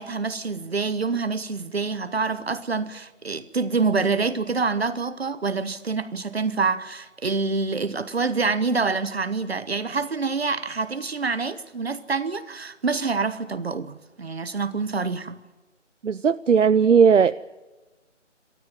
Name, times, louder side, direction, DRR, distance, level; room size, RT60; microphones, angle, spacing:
voice 1, 0.0-15.4, right 4 dB, 55° right, 1.2 m, -26 dB
voice 2, 16.0-17.3, right 6 dB, 75° right, 0.7 m, -17 dB
28.0 x 13.5 x 9.4 m
figure-of-eight pair, 170°, 37 cm